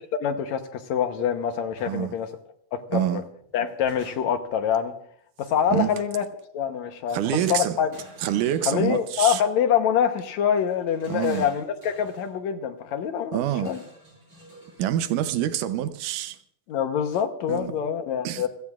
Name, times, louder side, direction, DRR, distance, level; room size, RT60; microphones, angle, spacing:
voice 1, 0.0-2.3 2.7-3.2 3.5-4.9 5.4-6.3 6.5-7.2 7.5-7.9 8.7-13.8 16.7-18.5, left 8 dB, 70° left, 2.2 m, -25 dB
sound 1, 1.7-2.0 3.4-4.5 5.6-6.1 7.4-9.2 10.5-12.3 13.6-14.9, right 1 dB, 40° right, 8.2 m, -50 dB
voice 2, 2.9-3.2 5.7-5.9 7.1-7.8 8.2-9.4 11.1-11.5 13.3-13.7 14.8-16.4 17.5-17.7 18.2-18.4, right 11 dB, 85° right, 2.4 m, -26 dB
27.5 x 16.5 x 2.4 m
omnidirectional pair, 3.6 m